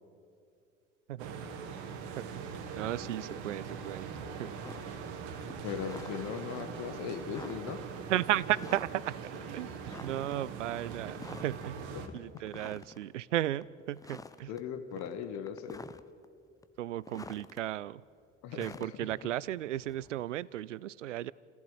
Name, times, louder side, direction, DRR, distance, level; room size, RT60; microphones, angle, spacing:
sound 1, 1.2-12.1, right 6 dB, 50° right, 2.1 m, -42 dB
voice 1, 2.2-4.5 8.1-9.2 9.5-11.9 12.1-14.5 16.8-18.0 18.5-21.3, right 13 dB, 70° right, 22 dB, 0.6 m, -35 dB
sound 2, 4.6-5.0 5.3-6.5 7.0-7.1 7.3-7.8 8.5-9.1 9.4-9.5 9.9-10.5 11.1-11.7 12.1-13.0 13.5-13.6 14.0-14.6 14.9-16.3 16.6-17.6 18.5-20.3, left 3 dB, 10° left, 0.8 m, -49 dB
voice 2, 5.6-7.8 11.9-12.4 14.5-15.8 18.4-19.3, left 8 dB, 45° left, 8 dB, 1.7 m, -39 dB
29.5 x 15.5 x 8.1 m, 2.5 s
figure-of-eight pair, 70°, 38 cm